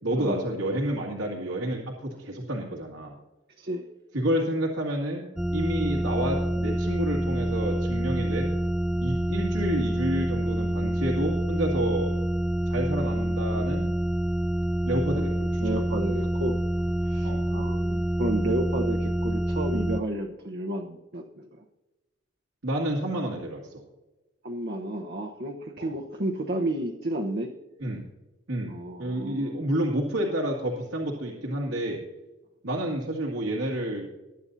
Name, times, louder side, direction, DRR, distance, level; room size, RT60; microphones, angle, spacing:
voice 1, 0.0-3.2 4.1-5.2 5.5-8.5 9.0-12.1 12.7-13.9 14.9-15.6 17.2-17.4 22.6-23.7 25.8-25.9 27.8-28.0 28.5-32.0 32.6-34.1, right 1 dB, 85° right, -2 dB, 2.2 m, -29 dB
sound 1, 5.4-20.0, right 1 dB, 5° right, 0.3 m, -27 dB
voice 2, 15.6-16.6 17.0-21.5 24.4-27.5 28.7-29.5, right 1 dB, 55° right, 1 dB, 1.0 m, -31 dB
21.0 x 9.7 x 2.7 m, 1.1 s
head